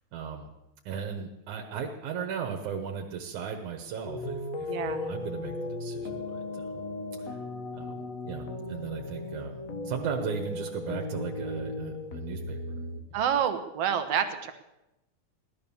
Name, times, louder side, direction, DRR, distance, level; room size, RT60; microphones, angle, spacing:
voice 1, 0.1-0.5 0.9-6.8 7.2-7.4 7.7-12.8 13.1-13.2, right 7 dB, 85° right, 2 dB, 2.7 m, -37 dB
sound 1, 4.0-13.0, left 2 dB, 55° left, 0.9 m, -36 dB
voice 2, 4.7-5.0 13.1-14.5, right 8 dB, 60° right, 8 dB, 2.1 m, -28 dB
17.0 x 12.0 x 7.0 m, 0.92 s
omnidirectional pair, 3.3 m